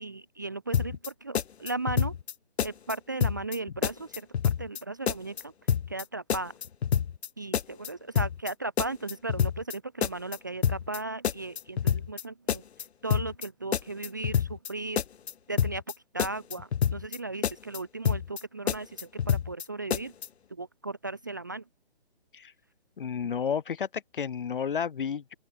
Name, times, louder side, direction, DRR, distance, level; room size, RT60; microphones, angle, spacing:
voice 1, 0.0-2.2 2.6-5.5 5.9-6.5 7.4-12.6 13.0-15.0 15.5-15.8 16.1-20.1 20.5-21.6, right 2 dB, 20° right, 0.5 m, -36 dB
sound 1, 0.7-1.1 1.3-2.3 2.6-2.9 3.2-3.6 3.8-4.8 5.1-5.4 5.7-6.0 6.3-7.3 7.5-7.9 8.2-8.5 8.8-9.7 10.0-10.4 10.6-11.0 11.2-12.2 12.5-12.8 13.1-13.5 13.7-14.7 15.0-15.3 15.6-15.9 16.2-17.2 17.4-17.8 18.1-18.4 18.7-19.6 19.9-20.3, left 8 dB, 90° left, 0.6 m, -27 dB
voice 2, 23.0-25.3, left 7 dB, 55° left, 2.5 m, -31 dB
open air
hypercardioid pair, 165°, 31 cm